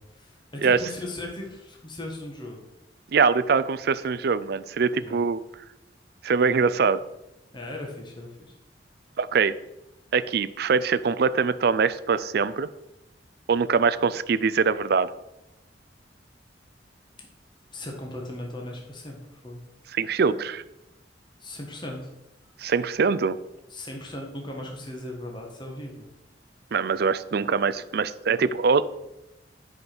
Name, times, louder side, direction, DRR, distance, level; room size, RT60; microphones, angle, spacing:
voice 1, 0.1-2.6 5.0-5.2 7.5-8.6 17.7-19.6 21.4-22.1 23.7-26.1, left 1 dB, 25° left, 0 dB, 1.5 m, -38 dB
voice 2, 3.1-5.4 6.2-7.0 9.2-9.5 10.1-12.7 13.5-15.1 19.9-20.6 22.6-23.4 26.7-28.8, right 5 dB, 60° right, 14 dB, 0.4 m, -23 dB
9.5 x 5.1 x 6.1 m, 0.91 s
head